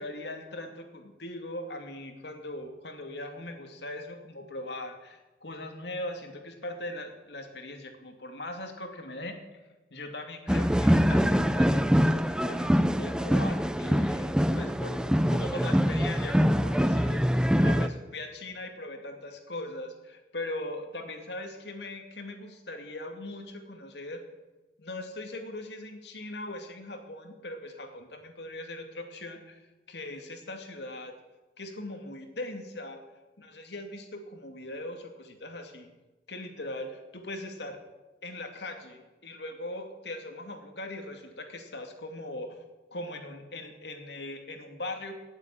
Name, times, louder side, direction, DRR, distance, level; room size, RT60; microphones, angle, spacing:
voice 1, 0.0-9.4 9.9-24.2 24.8-31.1 31.6-33.0 33.4-35.9 36.3-37.8 38.2-42.6 42.9-45.1, left 1 dB, 70° left, 4 dB, 2.5 m, -40 dB
sound 1, 10.5-17.9, equal, 5° right, 0.5 m, -24 dB
18.0 x 8.2 x 9.0 m, 1.1 s
head